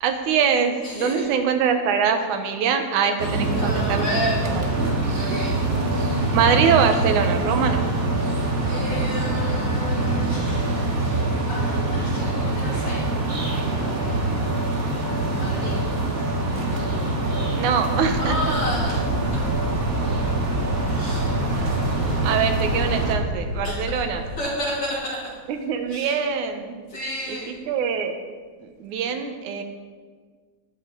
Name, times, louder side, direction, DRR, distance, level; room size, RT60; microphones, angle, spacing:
voice 1, 0.0-4.1 4.4-4.7 6.3-7.8 17.5-18.4 21.6-21.8 22.2-24.2 25.5-26.8 27.3-28.1 28.6-29.6, right 6 dB, 80° right, 7 dB, 2.4 m, -23 dB
voice 2, 0.8-1.3 3.5-4.5 5.1-5.6 8.2-11.1 11.5-13.1 13.6-14.8 15.4-15.8 18.2-19.5 20.9-21.4 23.6-24.0 24.4-25.3 25.9-26.2 26.9-27.5, equal, 50° left, -5 dB, 3.6 m, -32 dB
sound 1, 3.2-23.1, right 2 dB, 35° right, 1.6 m, -24 dB
sound 2, 17.9-24.4, left 2 dB, 20° left, 1.9 m, -32 dB
19.0 x 10.0 x 3.8 m, 1.5 s
omnidirectional pair, 3.5 m